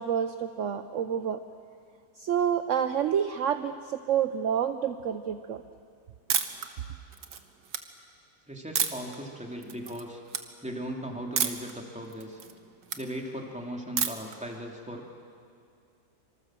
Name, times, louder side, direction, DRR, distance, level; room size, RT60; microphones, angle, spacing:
voice 1, 0.0-1.4 2.2-5.6, right 8 dB, 60° right, 9 dB, 1.0 m, -28 dB
sound 1, 6.3-6.7 7.1-7.8 8.8-9.2 9.6-10.0 10.3-10.4 11.4-11.7 12.1-13.0 14.0-14.3, right 7 dB, 80° right, 1.8 m, -29 dB
voice 2, 8.5-10.2 10.6-12.4 13.0-15.0, equal, 5° right, 0 dB, 2.8 m, -38 dB
26.0 x 25.0 x 7.6 m, 2.3 s
omnidirectional pair, 1.7 m